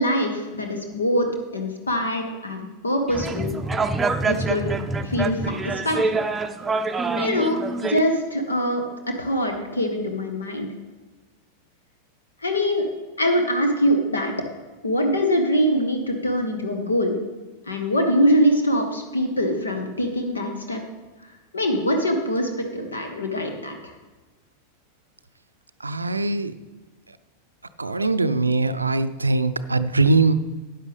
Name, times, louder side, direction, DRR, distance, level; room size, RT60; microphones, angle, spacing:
voice 1, 0.0-3.6 4.2-4.6 5.0-6.2 7.2-8.8 9.2-10.7 12.4-12.9 13.2-14.3 14.8-17.2 17.7-20.8 21.5-23.9, equal, 75° left, 4 dB, 1.3 m, -23 dB
sound 1, 3.1-8.0, right 3 dB, 15° right, 0.6 m, -26 dB
voice 2, 25.8-26.5 27.8-30.3, right 3 dB, 80° right, 12 dB, 0.5 m, -21 dB
13.0 x 9.6 x 3.4 m, 1.2 s
figure-of-eight pair, 90°, 0 cm